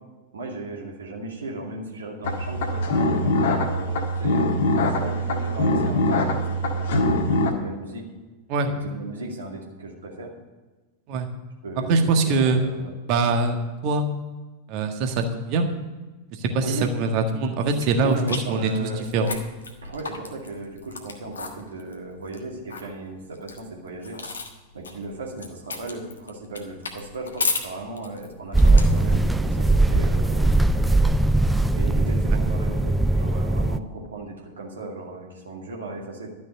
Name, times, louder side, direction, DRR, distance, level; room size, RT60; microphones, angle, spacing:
voice 1, 0.3-4.5 4.9-8.1 8.7-10.3 11.6-13.0 16.6-16.9 18.0-19.4 19.8-24.2 24.7-30.8 31.7-36.3, right 2 dB, 70° right, -1 dB, 2.4 m, -36 dB
sound 1, 2.2-7.5, left 1 dB, 55° left, 1.6 m, -23 dB
voice 2, 11.9-12.6 13.1-13.6 13.8-14.1 14.7-15.7 16.4-16.6 16.9-19.3, right 3 dB, 40° right, 5 dB, 1.6 m, -23 dB
sound 2, 17.7-29.3, left 4 dB, 70° left, 1.4 m, -35 dB
sound 3, 28.5-33.8, right 2 dB, 5° right, 0.5 m, -20 dB
12.5 x 6.3 x 8.7 m, 1.2 s
figure-of-eight pair, 90°, 0 cm